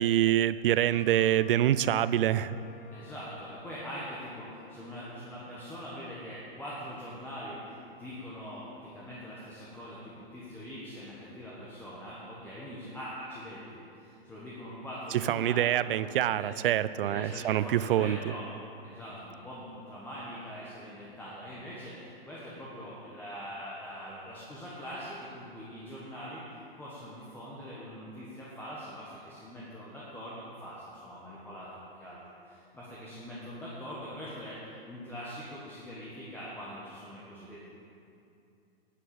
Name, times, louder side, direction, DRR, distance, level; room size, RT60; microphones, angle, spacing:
voice 1, 0.0-2.6 15.3-18.2, right 12 dB, 60° right, 16 dB, 0.5 m, -26 dB
Wind instrument woodwind instrument, 0.9-5.9, left 1 dB, 35° left, 1.3 m, -52 dB
voice 2, 2.9-4.4 4.7-7.5 8.0-8.6 8.9-10.0 10.3-13.6 14.3-15.7 16.3-16.5 17.0-18.4 18.8-19.6 19.9-21.9 22.3-26.4 26.8-30.3 30.6-30.7 31.0-31.7 32.0-32.2 32.8-34.5 34.9-37.7, equal, 5° left, -7 dB, 1.5 m, -42 dB
11.0 x 6.6 x 8.8 m, 2.6 s
hypercardioid pair, 145°, 30 cm